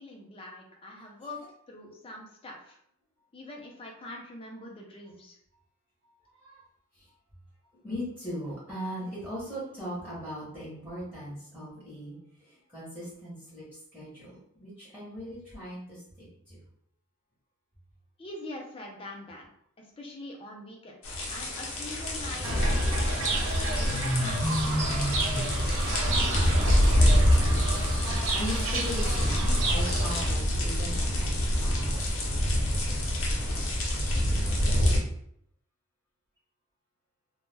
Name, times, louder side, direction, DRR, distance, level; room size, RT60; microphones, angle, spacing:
voice 1, 0.0-2.8 3.3-5.4 18.2-19.5 19.8-21.0 21.3-23.0 23.5-25.5, left 1 dB, 25° left, 0 dB, 0.4 m, -44 dB
voice 2, 6.3-6.6 7.0-7.1 7.8-13.6 13.9-16.6 26.2-34.5, equal, 10° right, -9 dB, 0.9 m, -40 dB
sound 1, 21.0-35.0, equal, 70° left, 0.6 m, -26 dB
Fowl / Bird, 22.4-30.3, right 2 dB, 75° right, 0.5 m, -31 dB
2.2 x 2.1 x 3.2 m, 0.70 s
head